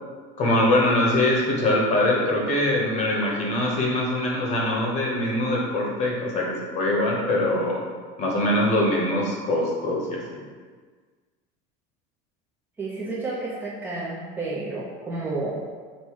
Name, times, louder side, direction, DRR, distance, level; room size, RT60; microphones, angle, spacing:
voice 1, 0.4-7.8 8.2-10.2, left 1 dB, 35° left, -2 dB, 0.9 m, -23 dB
voice 2, 12.8-15.6, right 3 dB, 10° right, -8 dB, 0.4 m, -31 dB
5.3 x 2.1 x 4.6 m, 1.5 s
cardioid pair, 175°, 21 cm